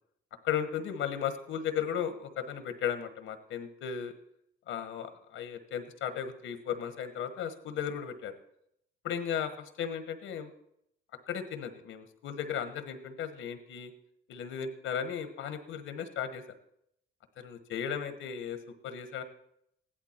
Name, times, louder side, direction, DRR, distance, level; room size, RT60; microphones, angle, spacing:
voice 1, 0.4-4.1 4.7-8.3 9.0-10.5 11.3-13.9 14.3-16.4 17.4-18.6 18.8-19.2, left 8 dB, 85° left, 10 dB, 1.3 m, -35 dB
15.5 x 11.5 x 4.4 m, 0.76 s
cardioid pair, 90°, 20 cm